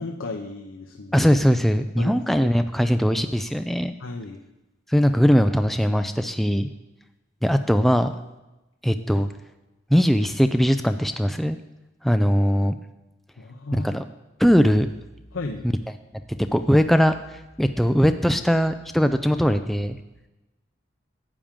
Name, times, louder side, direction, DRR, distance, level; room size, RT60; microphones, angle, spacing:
voice 1, 0.0-1.3 2.0-2.5 4.0-4.4 13.4-13.9 15.3-15.7, left 3 dB, 85° left, 3 dB, 0.7 m, -34 dB
voice 2, 1.1-3.9 4.9-6.7 7.4-8.1 8.8-9.3 9.9-11.6 12.0-12.7 13.7-14.0 14.4-14.9 16.5-17.1 17.6-20.0, equal, ahead, 8 dB, 0.3 m, -20 dB
12.0 x 8.7 x 3.7 m, 1.0 s
head